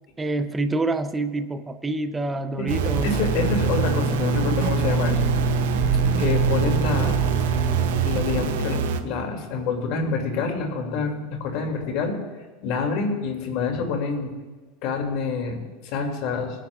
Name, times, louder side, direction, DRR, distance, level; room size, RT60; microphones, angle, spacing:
voice 1, 0.2-3.2, right 2 dB, 15° right, 10 dB, 0.5 m, -27 dB
sound 1, 2.7-9.0, right 7 dB, 85° right, 0.8 m, -24 dB
Bowed string instrument, 2.8-8.8, right 2 dB, 50° right, 3.4 m, -27 dB
voice 2, 3.0-5.3 6.2-7.2 7.8-12.2 12.6-14.3 14.8-16.7, left 4 dB, 60° left, 3 dB, 2.3 m, -27 dB
20.5 x 10.0 x 2.3 m, 1.3 s
supercardioid pair, 130°, 0 cm